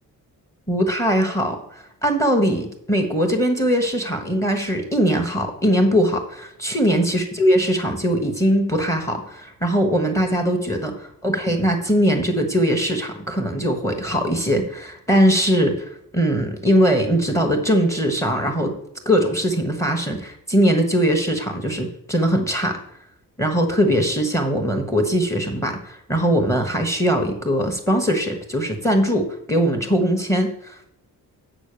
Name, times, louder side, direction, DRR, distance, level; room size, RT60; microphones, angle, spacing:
voice 1, 0.7-1.6 2.0-15.7 16.1-18.7 19.0-22.8 23.4-30.9, equal, 10° left, 4 dB, 1.3 m, -21 dB
7.9 x 6.2 x 6.8 m, 0.74 s
cardioid pair, 140°, 35 cm